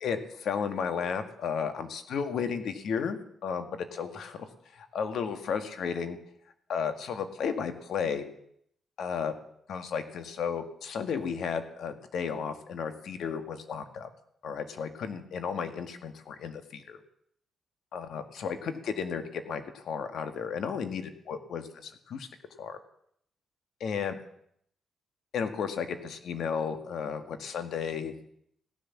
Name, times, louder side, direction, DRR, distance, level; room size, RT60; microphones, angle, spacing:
voice 1, 0.0-6.2 6.7-8.2 9.0-9.4 9.7-14.1 14.4-17.0 17.9-22.3 22.6-22.8 23.8-24.2 25.3-28.1, left 6 dB, 75° left, 8 dB, 1.9 m, -33 dB
16.5 x 11.0 x 7.3 m, 0.69 s
cardioid pair, 70°, 0 cm